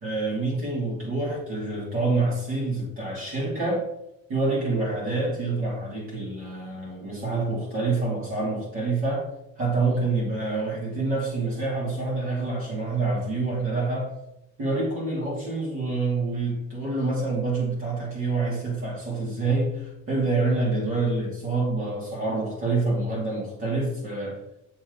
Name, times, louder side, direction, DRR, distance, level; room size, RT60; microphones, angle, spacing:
voice 1, 0.0-3.9 4.3-9.3 9.6-14.1 14.6-24.4, right 3 dB, 45° right, -5 dB, 2.9 m, -27 dB
7.4 x 6.2 x 4.0 m, 0.84 s
cardioid pair, 165°, 29 cm